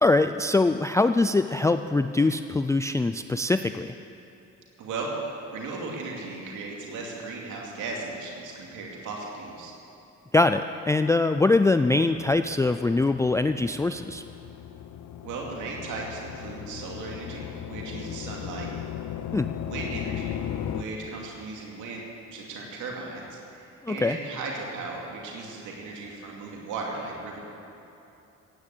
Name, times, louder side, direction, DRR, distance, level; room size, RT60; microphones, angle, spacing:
voice 1, 0.0-3.9 10.3-14.2 19.3-19.5 23.8-24.2, left 2 dB, 10° left, 9 dB, 0.4 m, -23 dB
voice 2, 4.8-9.7 15.2-18.7 19.6-22.0 22.3-27.4, right 3 dB, 85° right, -1 dB, 2.5 m, -36 dB
sound 1, 12.1-20.8, left 10 dB, 75° left, 0.9 m, -37 dB
15.0 x 9.7 x 8.4 m, 2.9 s
cardioid pair, 90°, 30 cm